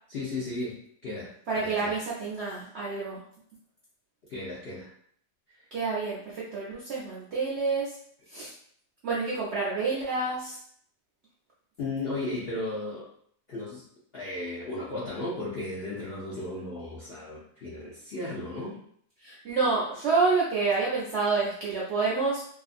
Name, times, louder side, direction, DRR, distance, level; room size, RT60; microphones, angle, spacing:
voice 1, 0.1-0.8 1.0-1.3 1.6-1.9 4.3-4.9 11.8-13.1 13.5-13.9 14.1-18.8, left 2 dB, 60° left, -6 dB, 0.6 m, -35 dB
voice 2, 1.5-3.2 5.7-8.0 8.3-8.5 9.0-10.6 19.2-22.4, right 4 dB, 65° right, -7 dB, 0.6 m, -28 dB
2.6 x 2.4 x 2.4 m, 0.63 s
omnidirectional pair, 1.7 m